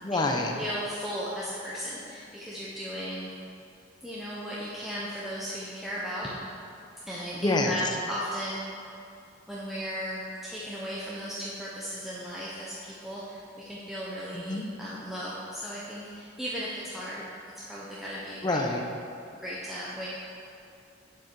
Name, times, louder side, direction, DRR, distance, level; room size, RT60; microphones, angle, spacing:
voice 1, 0.0-0.5 7.3-7.7 14.3-14.7 18.4-18.8, left 2 dB, 20° left, 2 dB, 0.8 m, -27 dB
voice 2, 0.5-3.3 4.0-6.3 7.1-8.6 9.5-17.2 17.6-18.6 19.3-20.1, equal, ahead, -8 dB, 0.9 m, -36 dB
8.9 x 7.5 x 4.7 m, 2.6 s
head